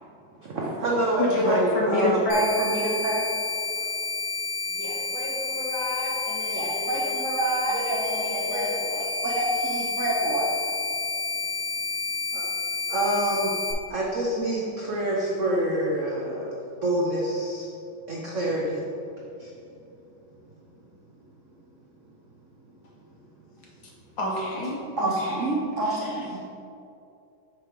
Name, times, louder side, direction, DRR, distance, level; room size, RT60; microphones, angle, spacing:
voice 1, 0.4-3.3 6.5-8.7 9.2-10.5 12.3-12.5 12.9-13.5 13.9-16.6 16.8-17.7 18.1-18.8 19.4-19.5 25.0-26.4, right 1 dB, 70° right, -3 dB, 0.7 m, -27 dB
voice 2, 1.2-2.6 24.2-25.6 25.9-26.1, left 1 dB, 65° left, -3 dB, 1.7 m, -27 dB
sound 1, 2.3-13.7, left 3 dB, 80° left, 1.8 m, -30 dB
voice 3, 4.7-7.2 7.7-9.0, left 1 dB, 45° left, -6 dB, 1.8 m, -35 dB
8.0 x 3.0 x 5.2 m, 2.7 s
omnidirectional pair, 2.2 m